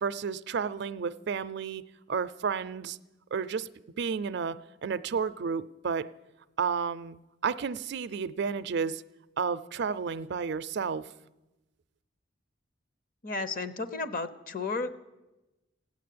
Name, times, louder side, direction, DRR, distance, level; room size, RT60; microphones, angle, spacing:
voice 1, 0.0-1.8 2.1-3.0 3.3-3.7 4.0-6.1 6.6-7.2 7.4-9.0 9.4-11.1, right 6 dB, 60° right, 0.5 m, -31 dB
voice 2, 13.2-14.9, left 3 dB, 45° left, 0.9 m, -33 dB
16.0 x 9.5 x 8.6 m
head